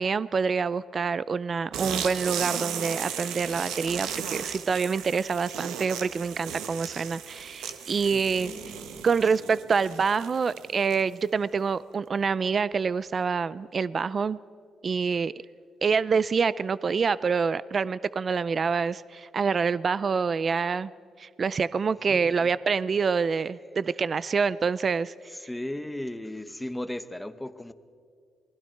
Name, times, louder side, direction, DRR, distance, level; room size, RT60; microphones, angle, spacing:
voice 1, 0.0-8.5 9.0-14.4 14.8-15.3 15.8-20.9 21.2-25.1, right 5 dB, 40° right, 18 dB, 0.4 m, -26 dB
sound 1, 1.7-11.2, right 8 dB, 90° right, 1.4 m, -36 dB
voice 2, 8.1-9.1 9.4-9.6 22.1-22.5 25.3-27.7, left 1 dB, 5° left, 11 dB, 1.0 m, -37 dB
28.5 x 20.5 x 4.5 m, 2.3 s
cardioid pair, 90°, 0 cm